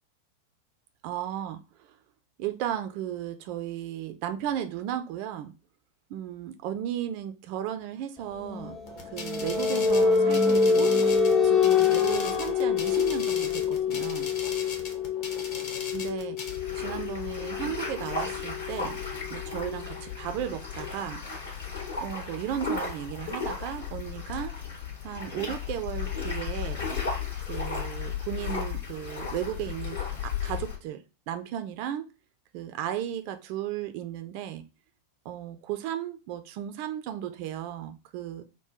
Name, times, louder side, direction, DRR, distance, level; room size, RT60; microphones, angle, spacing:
voice 1, 1.0-1.9 2.4-5.5 6.1-8.8 9.1-11.0 11.4-14.3 15.9-16.4 16.7-19.0 19.3-21.2 22.0-24.5 25.0-26.8 27.5-32.1 32.5-34.7 35.2-38.4, right 11 dB, 45° right, 0.4 m, -35 dB
sound 1, 8.4-19.9, left 5 dB, 25° left, 0.8 m, -26 dB
sound 2, 8.9-16.6, left 4 dB, 45° left, 1.1 m, -39 dB
sound 3, 16.5-30.8, left 5 dB, 65° left, 1.7 m, -35 dB
3.7 x 2.2 x 4.3 m
figure-of-eight pair, 90°, 0 cm